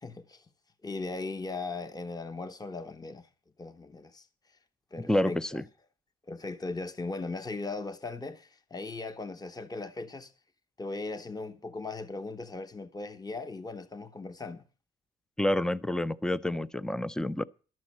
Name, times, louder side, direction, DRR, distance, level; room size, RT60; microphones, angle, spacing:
voice 1, 0.0-0.4 0.8-3.3 3.6-4.2 4.9-5.6 6.3-10.3 10.8-14.6, left 3 dB, 20° left, 1.0 m, -38 dB
voice 2, 5.0-5.6 15.4-17.5, left 1 dB, 5° left, 0.5 m, -28 dB
11.5 x 7.8 x 7.4 m
cardioid pair, 90°, 20 cm